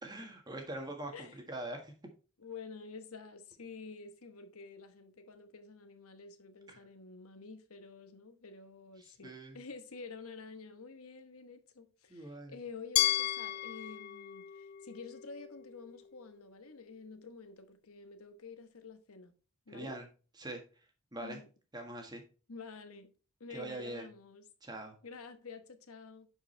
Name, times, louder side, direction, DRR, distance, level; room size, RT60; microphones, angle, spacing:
voice 1, 0.0-1.9 6.7-6.8 9.0-9.6 12.1-12.6 19.7-20.1 20.4-20.6 21.1-21.4 21.7-22.2 23.5-24.1 24.6-25.0, right 1 dB, 20° right, 1.5 m, -43 dB
voice 2, 2.4-19.3 19.7-19.9 21.2-21.5 22.5-23.1 23.4-24.4 25.0-26.3, left 4 dB, 75° left, 1.1 m, -49 dB
Glass, 13.0-15.9, left 13 dB, 45° left, 0.3 m, -34 dB
10.0 x 4.8 x 3.2 m
head